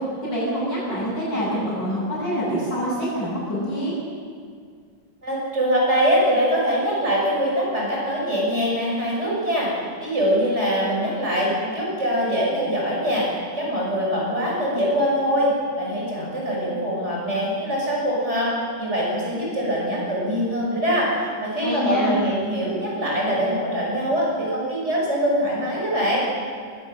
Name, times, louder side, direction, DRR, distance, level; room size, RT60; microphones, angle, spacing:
voice 1, 0.0-4.0 21.6-22.2, equal, 80° left, -6 dB, 8.8 m, -26 dB
voice 2, 5.2-9.7 10.0-13.3 13.6-18.5 18.8-26.2, equal, 40° right, -4 dB, 6.9 m, -23 dB
21.0 x 17.0 x 7.6 m, 2.1 s
omnidirectional pair, 1.9 m